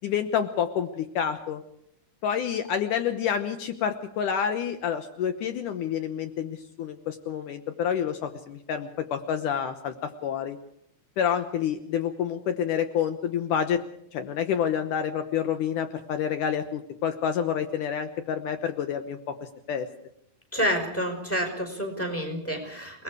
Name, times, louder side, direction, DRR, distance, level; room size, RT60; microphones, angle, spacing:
voice 1, 0.0-1.6 2.2-10.6 11.2-13.8 14.1-19.9, left 8 dB, 85° left, 8 dB, 1.8 m, -28 dB
voice 2, 20.5-23.0, equal, 5° left, 3 dB, 4.2 m, -29 dB
29.0 x 20.0 x 4.9 m, 0.70 s
omnidirectional pair, 5.2 m